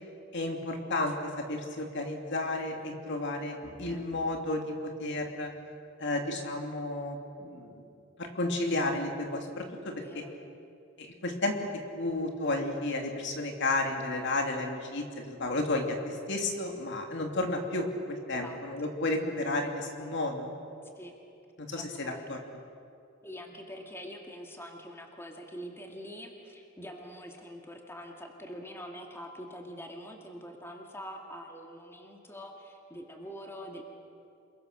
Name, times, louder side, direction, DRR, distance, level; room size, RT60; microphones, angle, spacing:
voice 1, 0.3-5.5 6.0-7.8 8.2-9.9 11.0-11.6 11.9-17.9 18.3-20.5 21.6-22.4, left 2 dB, 60° left, 3 dB, 2.8 m, -32 dB
voice 2, 9.9-10.3 18.4-18.6 20.8-21.1 21.7-22.2 23.2-33.8, equal, 10° left, 2 dB, 2.1 m, -44 dB
28.0 x 22.5 x 6.8 m, 2.6 s
head